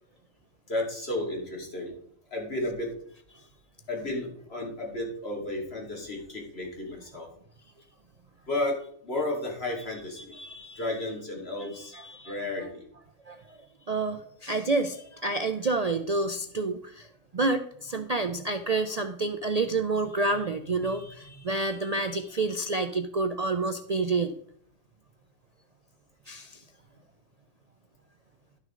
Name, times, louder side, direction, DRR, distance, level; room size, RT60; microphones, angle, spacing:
voice 1, 0.7-1.9 2.3-2.9 3.9-7.3 8.5-10.4 10.8-11.9 12.2-12.8 20.8-20.9, left 1 dB, 45° left, -2 dB, 2.8 m, -33 dB
voice 2, 10.2-10.8 11.7-12.4 13.3-13.6 13.9-17.1 17.3-24.3 26.3-26.6, right 3 dB, 65° right, 8 dB, 0.3 m, -29 dB
12.0 x 6.2 x 3.8 m, 0.64 s
omnidirectional pair, 1.4 m